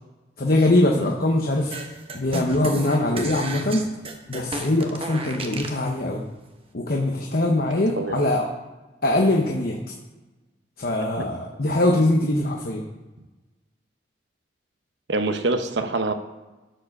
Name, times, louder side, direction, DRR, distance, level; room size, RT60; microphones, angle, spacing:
voice 1, 0.4-1.7 2.1-3.9 4.3-6.2 6.7-8.5 9.0-9.8 10.8-12.8, left 1 dB, 50° left, 1 dB, 0.9 m, -22 dB
sound 1, 1.7-5.8, right 2 dB, 30° right, 0.9 m, -33 dB
voice 2, 15.1-16.1, right 2 dB, 70° right, 8 dB, 0.8 m, -25 dB
11.5 x 4.9 x 6.5 m, 1.2 s
head